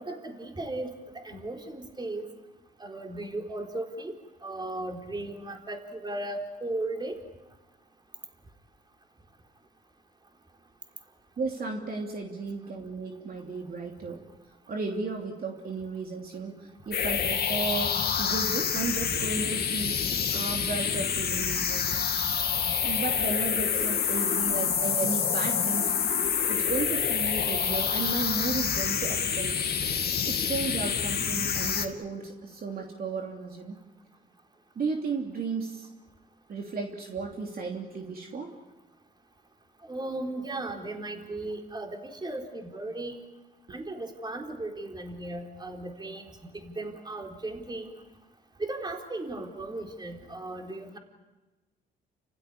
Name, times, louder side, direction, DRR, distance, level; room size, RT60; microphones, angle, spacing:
voice 1, 0.0-2.3 2.8-4.1 4.4-7.2 39.8-43.2 43.7-47.9 48.6-51.0, right 2 dB, 20° right, 2 dB, 4.1 m, -36 dB
voice 2, 11.4-14.2 14.7-22.0 22.8-26.0 26.5-29.6 30.3-33.8 34.7-35.9 36.5-38.5, right 4 dB, 50° right, 1 dB, 3.0 m, -34 dB
sound 1, 16.9-31.9, left 7 dB, 55° left, 2.5 m, -27 dB
29.5 x 16.0 x 10.0 m, 1.2 s
cardioid pair, 90°, 20 cm